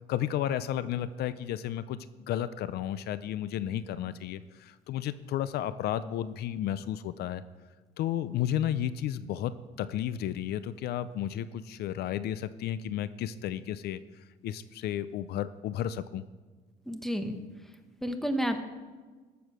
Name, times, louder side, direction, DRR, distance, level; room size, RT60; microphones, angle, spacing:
voice 1, 0.1-2.0 2.3-7.4 8.0-9.5 9.8-14.0 14.4-16.2, left 11 dB, 70° left, 14 dB, 0.5 m, -32 dB
voice 2, 16.9-17.4 18.0-18.6, equal, ahead, 6 dB, 1.2 m, -30 dB
13.5 x 7.0 x 6.2 m, 1.4 s
cardioid pair, 110°, 17 cm